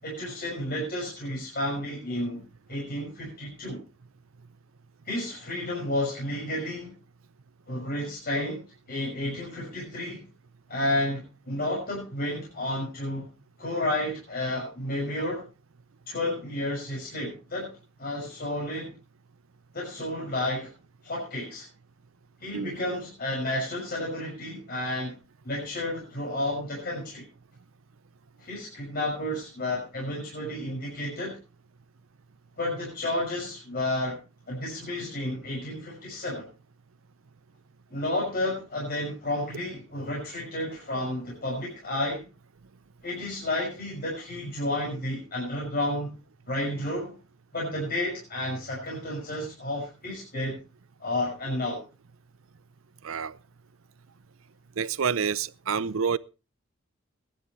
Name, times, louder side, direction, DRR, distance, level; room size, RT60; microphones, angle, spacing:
voice 1, 0.0-2.4 2.7-3.8 5.0-6.9 7.7-8.6 8.9-10.2 10.7-13.3 13.6-15.4 16.1-17.7 18.0-18.9 19.7-20.7 21.0-21.7 22.4-25.1 25.4-27.3 28.4-31.4 32.6-34.2 34.5-36.5 37.9-42.3 43.0-46.2 46.5-47.1 47.5-50.6 51.0-51.8, left 1 dB, 50° left, 6.1 m, -31 dB
voice 2, 53.0-53.4 54.8-56.2, right 6 dB, 70° right, 0.6 m, -28 dB
21.5 x 11.0 x 3.1 m
head